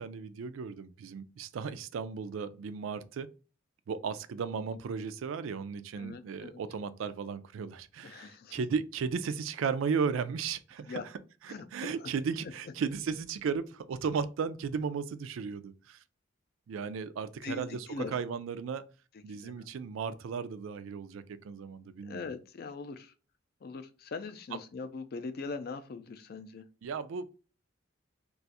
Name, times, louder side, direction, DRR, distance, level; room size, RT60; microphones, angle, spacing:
voice 1, 0.0-3.3 3.9-11.0 11.4-16.0 16.7-18.9 19.2-22.3 24.5-24.6 26.8-27.3, right 6 dB, 85° right, 0.3 m, -35 dB
voice 2, 6.0-6.6 8.0-8.6 10.9-11.0 11.5-12.1 17.4-18.1 19.4-19.7 22.0-23.1 23.6-26.6, left 4 dB, 50° left, 0.4 m, -41 dB
2.5 x 2.3 x 4.0 m
head